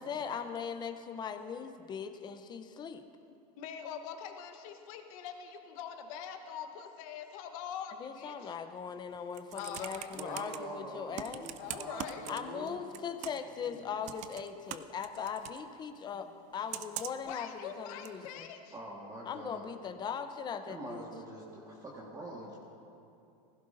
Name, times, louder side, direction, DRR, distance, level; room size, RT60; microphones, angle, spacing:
voice 1, 0.0-3.1 8.0-11.4 12.3-18.5 19.2-21.0, left 7 dB, 20° left, 8 dB, 0.6 m, -39 dB
voice 2, 3.2-8.6 9.5-10.6 11.6-12.2 17.2-18.7, left 8 dB, 60° left, 5 dB, 1.2 m, -44 dB
Computer keyboard, 9.1-10.6 11.1-12.7 12.9-13.5 14.0-15.6 16.7-17.3 18.0-18.1, right 13 dB, 35° right, 0.5 m, -42 dB
voice 3, 10.1-12.8 13.6-13.9 18.7-19.6 20.7-22.6, right 1 dB, 15° right, -4 dB, 1.6 m, -44 dB
19.0 x 16.0 x 2.6 m, 2.6 s
supercardioid pair, 140°, 20 cm